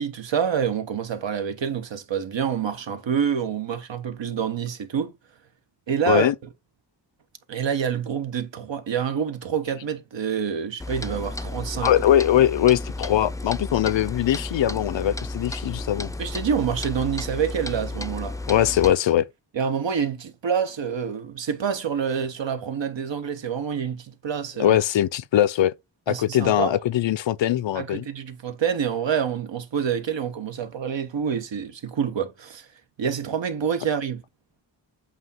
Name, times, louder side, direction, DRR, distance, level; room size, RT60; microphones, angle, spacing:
voice 1, 0.0-5.1 5.9-6.3 7.5-11.9 16.2-18.4 19.5-24.8 26.1-26.8 27.7-32.7 33.0-34.2, right 7 dB, 80° right, 1.2 m, -27 dB
Clock, 10.8-18.9, left 2 dB, 10° left, 0.4 m, -33 dB
voice 2, 11.8-16.1 18.5-19.3 24.6-25.7 26.1-28.1, left 11 dB, 85° left, 0.6 m, -21 dB
8.1 x 2.8 x 5.6 m
wide cardioid pair, 80°, 43 cm